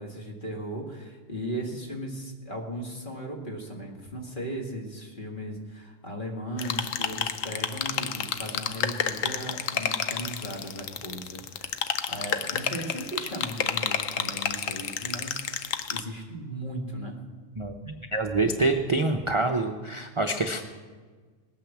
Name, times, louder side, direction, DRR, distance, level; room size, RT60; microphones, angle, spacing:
voice 1, 0.0-17.2, right 1 dB, 40° left, 0 dB, 2.2 m, -37 dB
sound 1, 6.6-16.0, left 8 dB, 75° left, 1.2 m, -30 dB
voice 2, 17.6-20.6, right 2 dB, 30° right, 3 dB, 0.6 m, -26 dB
19.5 x 9.0 x 7.3 m, 1.5 s
omnidirectional pair, 1.4 m